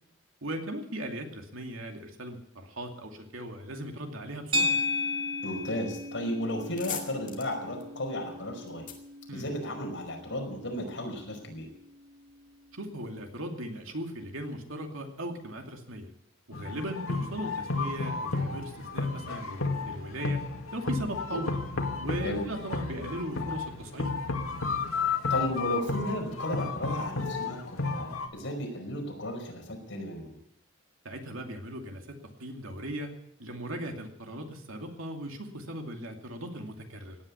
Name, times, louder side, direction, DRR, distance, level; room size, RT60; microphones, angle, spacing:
voice 1, 0.4-4.8 9.3-9.5 12.7-16.1 16.5-20.4 20.7-21.5 22.0-24.1 31.0-33.1 33.4-37.2, equal, 80° right, 3 dB, 2.5 m, -38 dB
sound 1, 4.5-13.0, left 2 dB, 25° right, 1.0 m, -36 dB
voice 2, 5.4-8.8 9.3-11.7 21.3-21.4 22.2-22.4 25.3-30.3, equal, 60° left, 1 dB, 5.2 m, -34 dB
sound 2, 6.7-10.1, left 8 dB, 40° left, 2.3 m, -43 dB
sound 3, 16.5-28.3, left 4 dB, 85° left, 2.1 m, -32 dB
17.0 x 9.9 x 8.3 m, 0.76 s
head